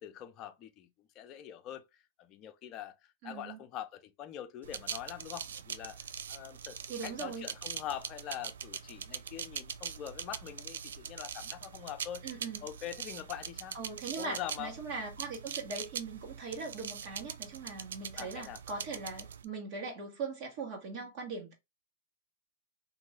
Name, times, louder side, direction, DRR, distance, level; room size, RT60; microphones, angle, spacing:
voice 1, 0.0-3.0 3.2-12.3 12.6-13.8 14.2-14.7 18.2-18.6, left 11 dB, 35° left, 0.6 m, -44 dB
voice 2, 3.2-3.6 6.9-7.5 12.2-12.6 13.7-21.5, right 4 dB, 50° right, 1.2 m, -40 dB
sound 1, 4.6-19.4, right 7 dB, 80° right, 0.3 m, -43 dB
2.6 x 2.6 x 3.3 m
hypercardioid pair, 125°, 0 cm